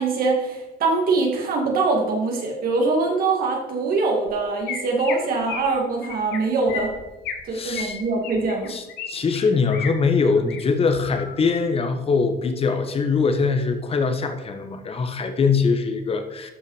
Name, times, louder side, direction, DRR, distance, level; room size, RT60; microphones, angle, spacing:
voice 1, 0.0-6.9 7.5-8.7, right 3 dB, 60° right, 0 dB, 2.3 m, -23 dB
Chirp tweet, 4.3-4.4 4.7-5.2 5.5-5.7 6.0-6.4 6.7-7.4 7.7-9.1 9.3-9.9 10.3-10.6 11.0-11.4, left 7 dB, 85° left, 1.6 m, -33 dB
voice 2, 7.5-8.0 8.7-16.5, left 4 dB, 35° left, 7 dB, 1.3 m, -22 dB
12.5 x 5.7 x 5.0 m, 1.0 s
cardioid pair, 110°, 17 cm